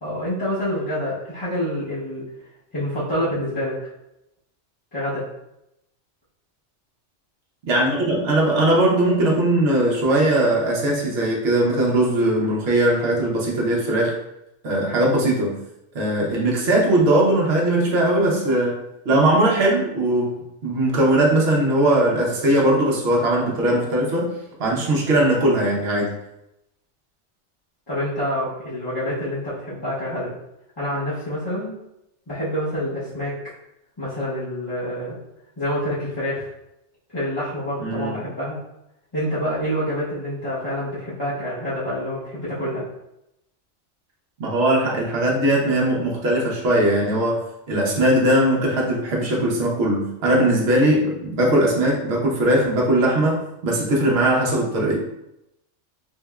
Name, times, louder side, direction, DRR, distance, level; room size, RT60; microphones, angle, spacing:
voice 1, 0.0-2.2 2.7-3.8 4.9-5.3 27.9-30.3 30.8-31.7 32.3-33.4 34.0-35.2 35.6-36.5 37.1-38.6 39.1-42.8 51.4-51.5, equal, 25° left, -12 dB, 0.8 m, -27 dB
voice 2, 7.7-14.1 14.6-15.6 15.9-18.8 19.0-24.3 24.6-26.1 37.8-38.2 44.4-47.4 47.7-55.0, right 1 dB, 60° right, -2 dB, 1.0 m, -20 dB
3.6 x 3.2 x 2.3 m, 0.85 s
omnidirectional pair, 1.2 m